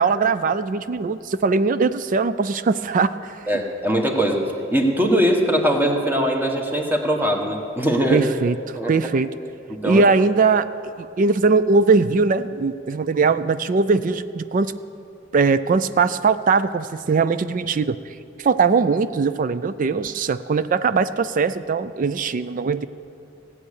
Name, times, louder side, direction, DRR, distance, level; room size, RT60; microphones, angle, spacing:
voice 1, 0.0-3.3 8.1-8.5 8.9-9.3 9.9-10.7 11.0-14.7 15.3-18.0 18.4-22.9, right 4 dB, 45° right, 13 dB, 0.4 m, -20 dB
voice 2, 3.5-4.4 4.7-8.3 8.7-8.9 9.7-10.0, equal, 10° right, 2 dB, 1.3 m, -21 dB
17.0 x 8.5 x 6.5 m, 2.6 s
head